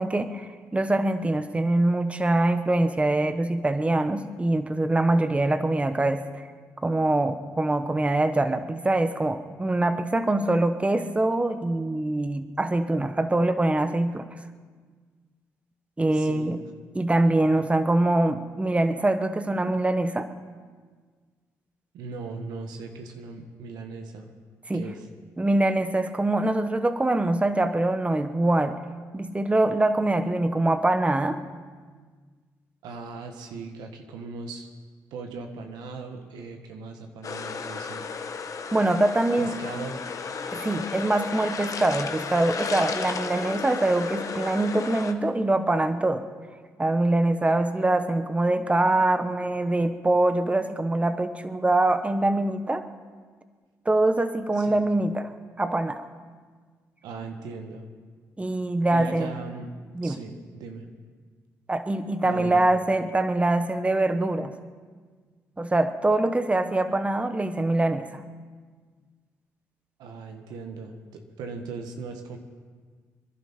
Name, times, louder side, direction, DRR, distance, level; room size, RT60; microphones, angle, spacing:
voice 1, 0.0-6.4 6.8-14.3 16.0-16.6 16.9-20.3 24.7-24.8 25.4-28.8 29.1-31.4 38.7-39.5 40.5-46.2 46.8-52.8 53.8-55.3 55.6-56.1 58.4-59.4 59.9-60.2 61.7-64.5 65.6-68.2, right 2 dB, 20° right, 9 dB, 1.0 m, -24 dB
voice 2, 16.1-16.5 21.9-24.3 24.7-25.1 32.8-34.7 35.1-38.1 39.4-40.0 54.5-54.8 57.0-57.9 58.9-59.7 60.0-60.9 62.2-62.6 70.0-72.4, right 4 dB, 85° right, 4 dB, 1.5 m, -38 dB
sound 1, 37.2-45.1, left 5 dB, 55° left, 1.1 m, -33 dB
26.0 x 11.5 x 4.4 m, 1.5 s
supercardioid pair, 55°, 7 cm